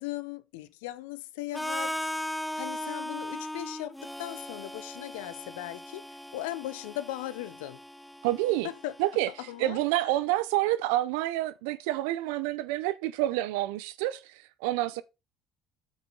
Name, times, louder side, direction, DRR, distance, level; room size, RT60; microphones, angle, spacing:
voice 1, 0.0-6.1 6.3-7.8 8.6-8.9 9.4-10.1, left 15 dB, 85° left, 0.6 m, -38 dB
Harmonica, 1.5-9.4, equal, 5° left, 0.3 m, -38 dB
voice 2, 8.2-8.7 9.0-9.3 9.6-14.2 14.6-15.0, right 15 dB, 80° right, 0.6 m, -28 dB
8.4 x 5.1 x 3.9 m
supercardioid pair, 75°, 0 cm